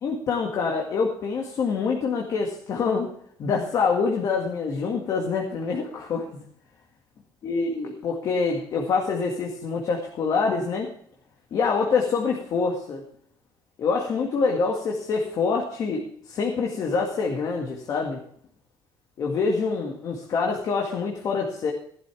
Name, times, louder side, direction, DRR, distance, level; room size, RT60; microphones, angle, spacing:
voice 1, 0.0-3.1 3.4-6.4 7.4-10.9 11.5-13.0 13.8-18.2 19.2-21.7, left 5 dB, 45° left, 0 dB, 2.0 m, -26 dB
15.0 x 12.5 x 3.5 m, 0.62 s
cardioid pair, 155°, 9 cm